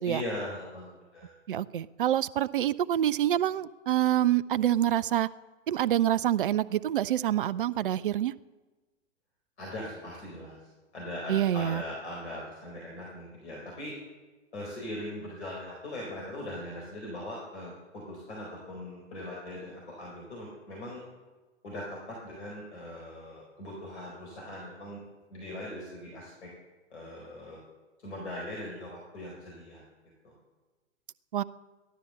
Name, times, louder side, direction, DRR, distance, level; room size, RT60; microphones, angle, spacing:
voice 1, 0.0-1.3 9.6-10.6 10.9-13.9 14.5-19.7 20.0-21.0 21.6-25.0 25.3-26.5 26.9-27.6 28.0-29.8 30.2-30.3, left 1 dB, 60° left, -2 dB, 4.4 m, -40 dB
voice 2, 1.5-5.3 5.7-8.3 11.3-11.8 31.3-31.4, right 11 dB, 45° right, 18 dB, 0.5 m, -26 dB
15.5 x 12.0 x 6.8 m, 1.2 s
figure-of-eight pair, 105°, 38 cm